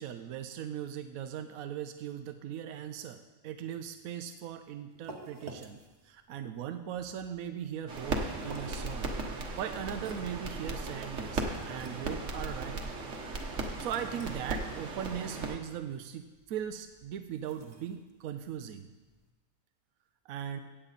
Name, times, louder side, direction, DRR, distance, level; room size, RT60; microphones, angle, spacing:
voice 1, 0.0-5.8 6.0-9.2 9.6-12.8 13.8-18.9 20.2-20.6, right 9 dB, 80° right, 8 dB, 1.1 m, -39 dB
sound 1, 4.3-19.3, right 2 dB, 35° right, 1.1 m, -52 dB
sound 2, 7.9-15.6, right 2 dB, 60° right, 1.5 m, -37 dB
15.5 x 8.7 x 4.1 m, 1.2 s
omnidirectional pair, 1.5 m